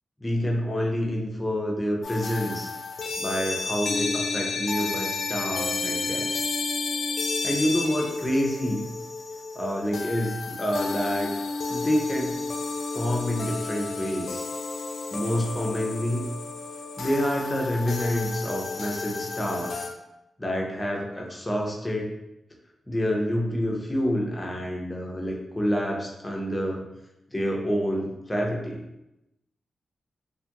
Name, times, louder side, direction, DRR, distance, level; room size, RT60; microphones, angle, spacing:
voice 1, 0.2-2.7 3.2-6.5 7.4-8.9 9.5-11.3 11.7-12.4 12.9-14.4 15.1-16.3 17.0-19.9 20.4-22.1 22.9-26.8 27.3-28.8, equal, 15° left, -1 dB, 0.6 m, -28 dB
sound 1, 2.0-19.9, left 3 dB, 70° left, 0.3 m, -31 dB
2.5 x 2.4 x 2.8 m, 0.89 s
wide cardioid pair, 105°, 0 cm